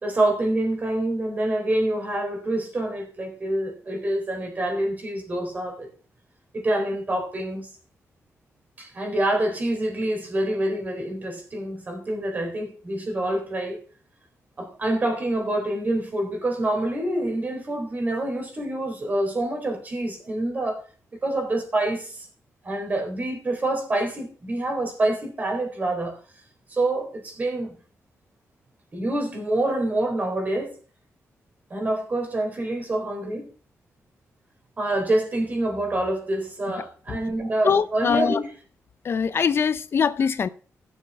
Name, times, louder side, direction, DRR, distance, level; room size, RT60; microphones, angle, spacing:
voice 1, 0.0-5.9 6.5-7.7 8.8-13.8 14.6-20.8 21.2-22.3 22.6-26.2 26.7-27.7 28.9-30.7 31.7-33.5 34.8-38.5, right 1 dB, 35° right, 4.0 m, -26 dB
voice 2, 37.6-38.4 39.0-40.5, left 6 dB, 50° left, 0.5 m, -22 dB
15.5 x 7.1 x 4.7 m
wide cardioid pair, 140°, 5 cm